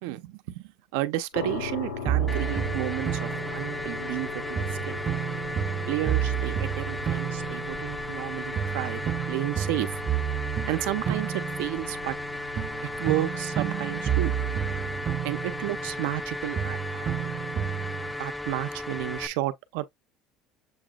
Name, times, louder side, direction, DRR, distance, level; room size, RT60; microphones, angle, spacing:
voice 1, 0.0-5.0 5.9-9.9 10.7-12.2 13.0-14.3 15.2-17.3 18.2-19.8, right 16 dB, 85° right, 0.7 m, -32 dB
sound 1, 1.3-16.2, left 5 dB, 85° left, 1.5 m, -41 dB
sound 2, 2.1-4.2 4.6-8.3 8.6-12.2 12.6-16.3 16.6-18.1, right 10 dB, 40° right, 0.6 m, -31 dB
sound 3, 2.3-19.3, left 2 dB, 5° left, 0.3 m, -35 dB
7.1 x 3.0 x 2.3 m
cardioid pair, 135°, 0 cm